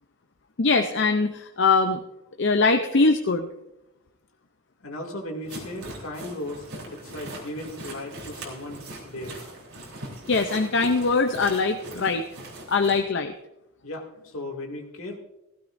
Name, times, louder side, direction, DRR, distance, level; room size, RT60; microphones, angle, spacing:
voice 1, 0.6-2.0 2.4-3.5 10.3-12.2 12.7-13.3, left 3 dB, 55° left, 5 dB, 0.6 m, -22 dB
voice 2, 4.8-9.4 13.8-15.2, left 1 dB, 75° left, 1 dB, 2.4 m, -36 dB
sound 1, 5.5-13.0, right 1 dB, 80° right, 3.7 m, -40 dB
16.0 x 15.5 x 2.6 m, 0.96 s
head